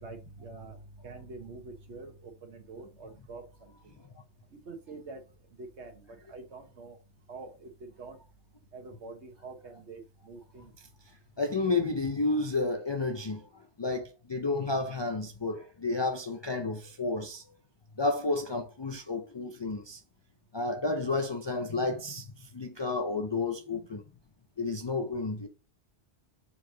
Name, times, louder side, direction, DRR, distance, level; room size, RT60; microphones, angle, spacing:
voice 1, 0.0-4.0 4.5-5.2 5.6-7.0 7.3-8.2 8.7-10.7, right 3 dB, 75° right, 1.5 m, -46 dB
voice 2, 11.4-13.5 13.8-17.4 18.0-20.0 20.5-24.0 24.6-25.5, left 3 dB, 45° left, 0.3 m, -31 dB
4.6 x 4.3 x 2.7 m
omnidirectional pair, 1.2 m